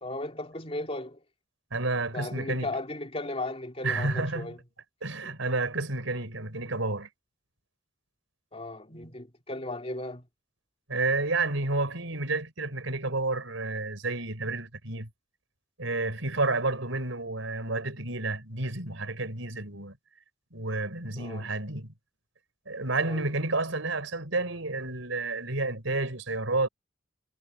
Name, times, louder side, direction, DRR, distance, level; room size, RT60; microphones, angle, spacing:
voice 1, 0.0-1.2 2.1-4.6 5.2-5.3 8.5-10.3 21.2-21.5 23.0-23.3, left 2 dB, 30° left, 3.0 m, -36 dB
voice 2, 1.7-2.7 3.8-4.5 5.0-7.1 10.9-15.1 15.8-20.0 20.5-21.9 22.7-26.7, right 2 dB, 80° right, 4.6 m, -30 dB
head